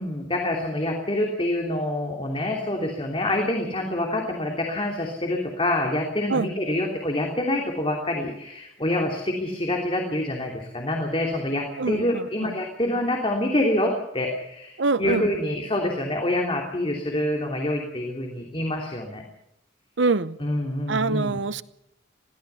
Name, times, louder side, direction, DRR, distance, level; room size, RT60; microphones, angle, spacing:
voice 1, 0.0-19.2 20.4-21.4, left 1 dB, 30° left, 3.1 m, -26 dB
voice 2, 11.8-12.5 14.8-15.3 20.0-20.4 20.9-21.6, right 3 dB, 75° right, 0.8 m, -25 dB
22.0 x 17.0 x 7.1 m
head